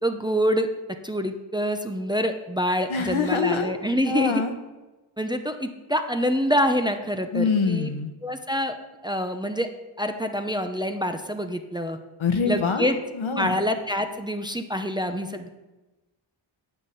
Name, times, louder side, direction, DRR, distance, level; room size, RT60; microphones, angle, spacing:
voice 1, 0.0-0.7 1.0-4.4 5.2-7.9 8.2-8.8 9.0-9.7 10.0-12.0 12.5-13.0 13.4-15.5, equal, 10° right, 6 dB, 0.7 m, -26 dB
voice 2, 2.9-3.7 4.1-4.5 7.3-8.1 12.2-13.6, left 4 dB, 70° left, 7 dB, 1.3 m, -25 dB
10.0 x 6.0 x 8.3 m, 1.1 s
wide cardioid pair, 105°, 49 cm